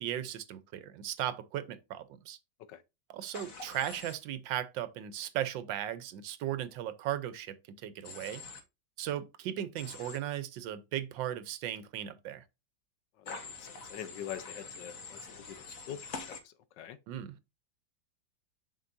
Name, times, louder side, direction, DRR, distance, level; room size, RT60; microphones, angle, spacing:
voice 1, 0.0-2.4 3.1-8.4 9.0-12.4 17.1-17.4, right 11 dB, 85° right, 1.4 m, -37 dB
Human voice / Train, 3.3-4.1 8.0-8.6 9.8-10.2 13.3-16.4, left 4 dB, 50° left, 1.5 m, -45 dB
voice 2, 13.9-15.2 15.9-16.0 16.8-17.0, left 10 dB, 75° left, 1.4 m, -41 dB
7.7 x 5.9 x 2.6 m
omnidirectional pair, 2.0 m